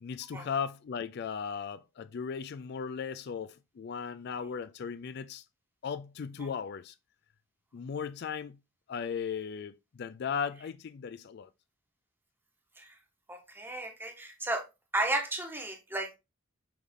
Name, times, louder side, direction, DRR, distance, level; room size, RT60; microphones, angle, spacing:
voice 1, 0.0-5.4 5.8-6.9 7.7-8.6 8.9-11.5, left 6 dB, 50° left, 0.3 m, -37 dB
voice 2, 13.3-14.6 14.9-16.2, right 2 dB, 10° right, 1.3 m, -33 dB
7.7 x 3.6 x 3.6 m
head